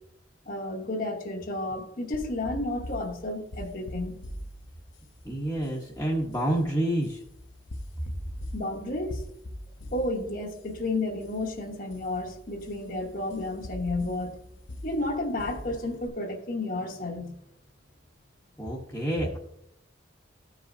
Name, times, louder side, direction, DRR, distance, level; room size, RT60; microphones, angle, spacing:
voice 1, 0.5-4.2 8.5-9.2 9.9-17.3, left 2 dB, 45° left, 1.0 m, -32 dB
sound 1, 2.1-16.1, left 1 dB, 90° left, 0.8 m, -43 dB
voice 2, 5.2-7.2 18.6-19.4, right 1 dB, 10° left, 1.0 m, -28 dB
14.0 x 4.9 x 2.7 m
head